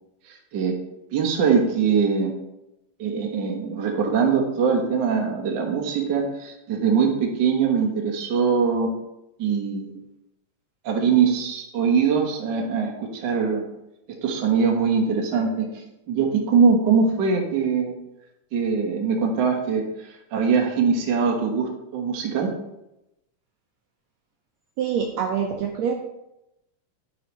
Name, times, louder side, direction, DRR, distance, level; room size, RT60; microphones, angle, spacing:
voice 1, 0.3-0.8 1.1-2.3 3.0-8.9 9.4-10.0 10.8-13.7 14.2-17.9 18.5-22.5, right 6 dB, 55° right, 1 dB, 1.2 m, -22 dB
voice 2, 24.8-26.0, right 7 dB, 75° right, 1 dB, 1.6 m, -25 dB
13.5 x 4.7 x 3.1 m, 0.90 s
omnidirectional pair, 3.7 m